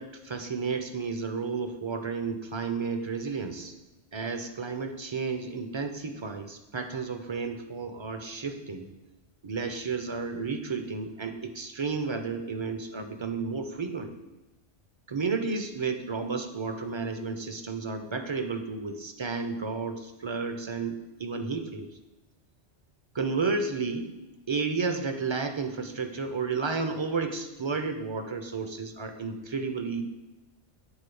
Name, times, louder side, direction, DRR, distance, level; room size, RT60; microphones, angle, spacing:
voice 1, 0.0-3.7 4.1-8.9 9.4-14.1 15.1-21.9 23.1-24.1 24.5-30.0, right 4 dB, 30° right, 6 dB, 0.6 m, -32 dB
9.1 x 4.1 x 6.8 m, 1.0 s
omnidirectional pair, 1.2 m